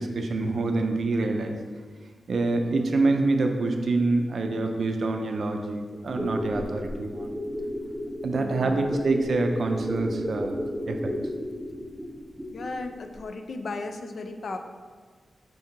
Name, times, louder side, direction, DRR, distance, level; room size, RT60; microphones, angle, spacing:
voice 1, 0.0-1.6 2.3-7.3 8.2-10.6 10.9-11.2, right 3 dB, 60° right, 4 dB, 0.4 m, -26 dB
sound 1, 6.1-12.9 13.1-13.2, equal, 5° right, 0.5 m, -32 dB
voice 2, 8.3-8.9 12.5-14.6, left 3 dB, 55° left, 6 dB, 0.3 m, -35 dB
5.2 x 2.8 x 3.6 m, 1.5 s
wide cardioid pair, 170°, 0 cm